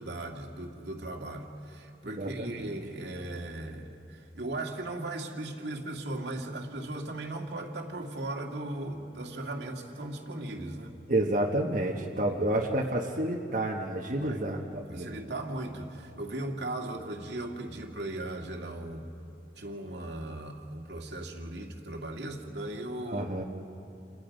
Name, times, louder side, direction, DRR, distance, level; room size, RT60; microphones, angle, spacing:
voice 1, 0.0-11.0 12.2-12.6 14.2-14.5 14.9-19.1 19.6-23.3, right 1 dB, 75° right, 1 dB, 2.2 m, -38 dB
voice 2, 2.0-2.7 11.1-15.1 23.1-23.4, right 1 dB, 50° right, -2 dB, 1.5 m, -30 dB
29.5 x 28.0 x 5.3 m, 2.8 s
head